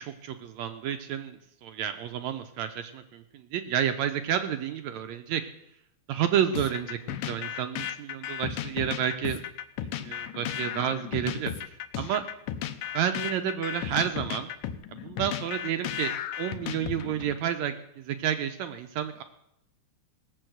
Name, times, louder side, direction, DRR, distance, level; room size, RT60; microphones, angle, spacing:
voice 1, 0.0-5.4 6.1-9.4 10.0-12.2 12.9-14.5 14.9-19.2, right 9 dB, 75° right, 8 dB, 1.8 m, -30 dB
sound 1, 6.6-17.3, left 10 dB, 80° left, 2.3 m, -35 dB
18.0 x 7.0 x 7.8 m, 0.80 s
omnidirectional pair, 3.5 m